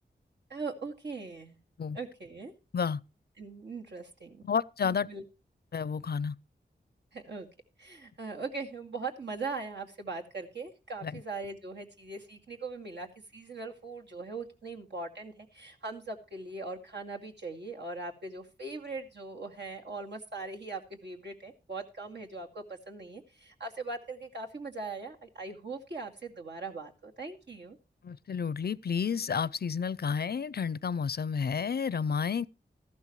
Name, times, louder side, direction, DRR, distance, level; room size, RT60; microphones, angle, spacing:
voice 1, 0.5-1.6 1.9-2.5 3.4-4.4 4.8-5.2 7.1-7.5 7.8-27.8, right 3 dB, 70° right, 2.3 m, -40 dB
voice 2, 4.4-5.1 5.7-6.4 11.0-11.2 28.0-32.5, left 6 dB, 60° left, 0.5 m, -31 dB
14.0 x 12.0 x 3.1 m
wide cardioid pair, 70°, 19 cm